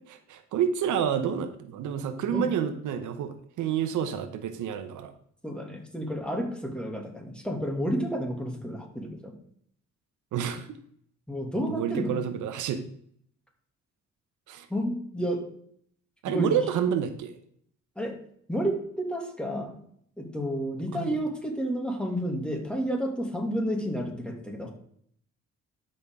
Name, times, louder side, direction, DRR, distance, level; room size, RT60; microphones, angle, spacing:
voice 1, 0.1-5.1 10.3-10.7 11.6-12.8 14.5-14.7 16.2-17.4 20.9-21.1, right 8 dB, 80° right, 10 dB, 0.9 m, -29 dB
voice 2, 5.4-9.3 11.3-12.1 14.7-15.5 16.3-16.5 18.0-18.2 18.5-19.8 20.2-24.7, equal, 5° left, 2 dB, 2.3 m, -30 dB
12.5 x 5.7 x 3.6 m, 0.64 s
cardioid pair, 90°, 30 cm